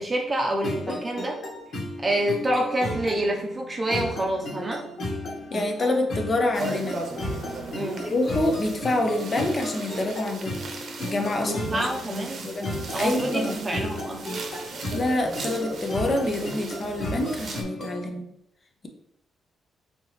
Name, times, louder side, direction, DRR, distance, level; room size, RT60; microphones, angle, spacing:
voice 1, 0.0-1.4 2.0-4.9 7.7-8.0 11.4-12.5 12.9-14.4, right 1 dB, 30° right, 0 dB, 0.6 m, -27 dB
sound 1, 0.6-18.1, left 1 dB, 65° left, 1.5 m, -34 dB
voice 2, 5.5-7.0 8.0-10.6 11.0-12.7 13.0-13.6 14.9-18.3, left 2 dB, 35° left, 4 dB, 0.7 m, -27 dB
sound 2, 6.5-17.6, right 3 dB, 55° right, 0.8 m, -38 dB
4.2 x 2.8 x 3.3 m, 0.73 s
cardioid pair, 100°, 0 cm